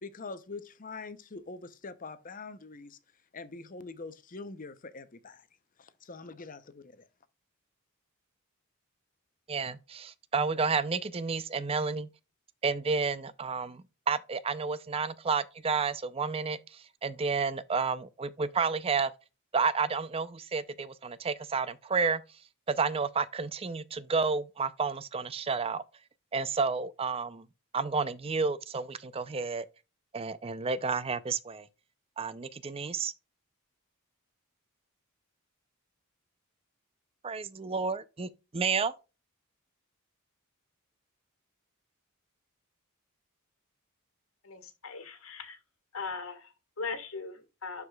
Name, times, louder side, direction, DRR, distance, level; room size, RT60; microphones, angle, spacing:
voice 1, 0.0-3.0 3.3-5.5 5.8-7.1, left 3 dB, 40° left, 0.7 m, -44 dB
voice 2, 9.5-12.1 12.6-16.6 17.0-19.1 19.5-22.2 22.7-25.8 26.3-27.4 27.7-29.7 30.1-31.7 32.2-33.1 37.2-38.9, right 4 dB, 25° right, 0.5 m, -31 dB
voice 3, 44.4-45.6 45.9-47.9, left 4 dB, 70° left, 1.6 m, -39 dB
12.0 x 4.8 x 2.3 m
head